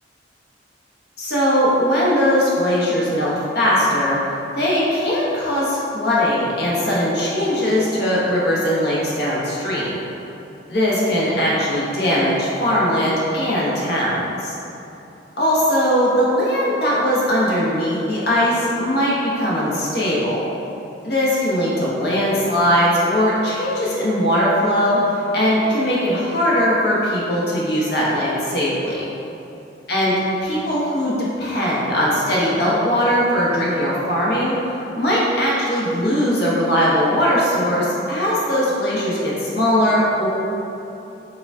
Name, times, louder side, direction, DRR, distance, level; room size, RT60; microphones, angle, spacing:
voice 1, 1.2-4.2 4.6-9.8 10.7-14.5 15.4-20.4 21.0-29.1 29.9-30.1 30.4-34.6 34.9-40.3, equal, 60° left, -6 dB, 0.9 m, -20 dB
5.0 x 2.3 x 3.5 m, 2.9 s
head